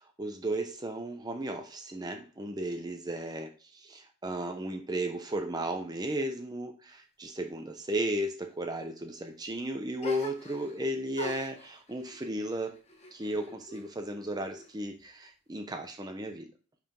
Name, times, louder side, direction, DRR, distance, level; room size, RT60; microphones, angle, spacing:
voice 1, 0.2-12.7 13.1-16.5, right 1 dB, 20° right, 0.7 m, -35 dB
sound 1, 10.0-10.8 11.1-13.9 14.2-15.0, left 2 dB, 30° left, 1.1 m, -45 dB
5.5 x 5.0 x 5.2 m
head